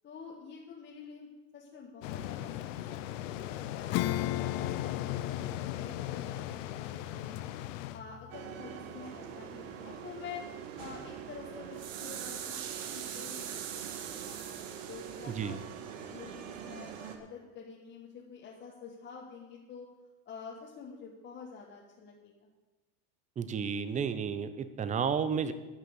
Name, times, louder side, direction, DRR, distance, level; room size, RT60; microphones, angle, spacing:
voice 1, 0.0-5.3 5.8-7.5 7.9-10.4 10.8-13.4 13.7-15.6 16.1-19.9 20.2-22.5, left 6 dB, 25° left, -2 dB, 1.5 m, -48 dB
sound 1, 2.0-8.0, left 12 dB, 75° left, 0.9 m, -38 dB
Acoustic guitar / Strum, 3.9-9.9, left 15 dB, 45° left, 0.5 m, -37 dB
sound 2, 8.3-17.2, right 9 dB, 75° right, 1.7 m, -42 dB
voice 2, 15.3-15.6 23.4-25.5, right 6 dB, 20° right, 12 dB, 0.7 m, -32 dB
12.5 x 6.6 x 8.0 m, 1.1 s
supercardioid pair, 135°, 38 cm